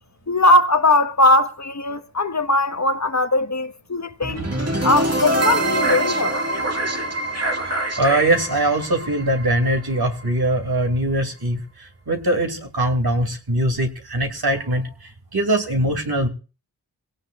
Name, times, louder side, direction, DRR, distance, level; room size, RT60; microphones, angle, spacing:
voice 1, 0.3-4.4 4.8-6.3, left 2 dB, 40° left, 1.3 m, -19 dB
sound 1, 4.2-10.3, right 2 dB, 35° right, 2.1 m, -24 dB
voice 2, 8.0-16.3, right 1 dB, 65° right, 2.6 m, -22 dB
21.5 x 17.0 x 2.4 m
wide cardioid pair, 40°, 41 cm